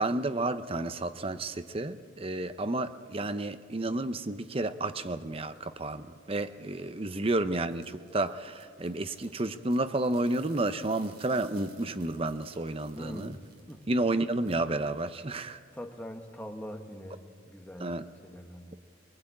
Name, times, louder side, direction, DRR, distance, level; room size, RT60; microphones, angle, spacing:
voice 1, 0.0-13.4 13.9-15.6 17.8-18.0, right 2 dB, 30° right, 0.7 m, -31 dB
sound 1, 7.5-14.6, right 5 dB, 55° right, 3.1 m, -59 dB
voice 2, 12.9-13.8 15.7-18.7, equal, 10° left, 1.3 m, -43 dB
22.0 x 21.5 x 8.6 m
head